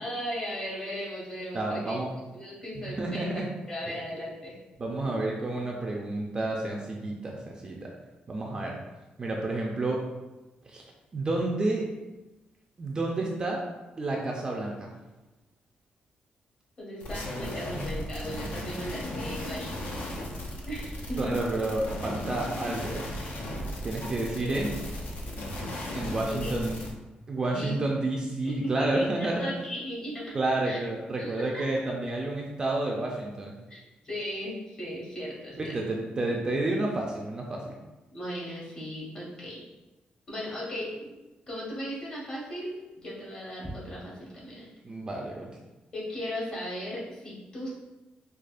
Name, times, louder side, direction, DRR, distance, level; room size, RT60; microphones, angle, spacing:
voice 1, 0.0-2.0 2.3-4.5 16.8-20.0 20.7-21.4 24.4-24.6 26.3-26.6 27.4-27.8 28.4-30.4 30.6-30.8 31.2-31.7 33.7-35.8 38.1-39.6 40.3-41.1 41.5-42.7 43.0-44.7 45.9-47.7, equal, 30° left, -5 dB, 1.1 m, -37 dB
voice 2, 1.5-2.1 2.8-3.5 4.8-7.9 8.3-8.8 9.2-10.0 10.7-10.8 11.1-11.9 12.8-13.6 14.0-14.9 21.2-23.0 23.8-24.7 25.9-26.8 27.3-29.5 30.3-33.5 35.6-37.8 44.8-45.5, right 2 dB, 25° right, -1 dB, 0.4 m, -30 dB
sound 1, 17.0-26.9, left 1 dB, 65° left, 0.6 m, -36 dB
4.8 x 2.3 x 2.4 m, 1.1 s
wide cardioid pair, 165°, 3 cm